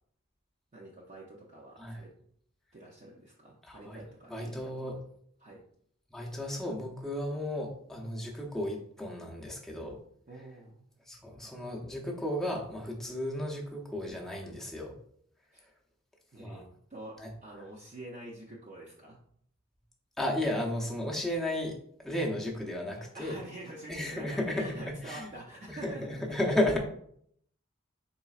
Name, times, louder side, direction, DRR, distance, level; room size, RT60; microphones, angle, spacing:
voice 1, 0.7-2.1 2.7-4.7 5.4-5.6 10.3-10.8 15.5-15.6 16.3-19.2 23.1-26.5, right 1 dB, 40° right, -4 dB, 0.6 m, -47 dB
voice 2, 3.6-4.0 4.3-5.0 6.1-10.0 11.1-15.0 16.4-16.6 17.2-17.3 20.2-23.4 23.9-24.7 25.0-25.3 25.7-26.8, left 1 dB, ahead, -2 dB, 0.6 m, -34 dB
4.1 x 3.7 x 2.4 m, 0.66 s
head